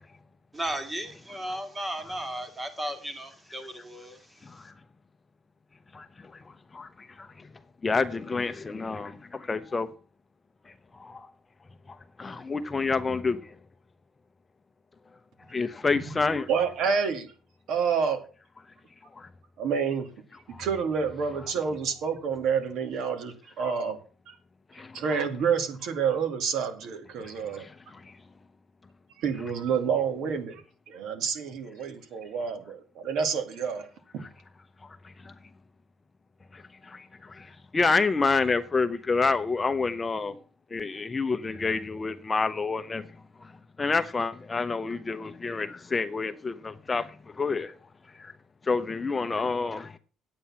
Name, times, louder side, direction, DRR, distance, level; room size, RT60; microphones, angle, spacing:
voice 1, 0.5-4.2, right 1 dB, 15° right, 2.0 m, -35 dB
voice 2, 7.8-9.9 11.0-11.3 12.2-13.4 15.5-16.5 19.2-19.3 20.5-20.6 24.7-24.9 27.6-27.7 35.2-35.3 36.5-37.5 37.7-40.3 40.7-43.1 43.8-47.7 48.2-48.3 48.7-50.0, left 4 dB, 20° left, 0.7 m, -28 dB
voice 3, 16.5-17.3 17.7-18.2 19.6-20.1 20.6-24.0 24.3-24.4 24.9-27.6 29.2-30.6 30.9-33.9, right 6 dB, 70° right, 2.3 m, -28 dB
9.8 x 8.6 x 5.8 m
cardioid pair, 125°, 0 cm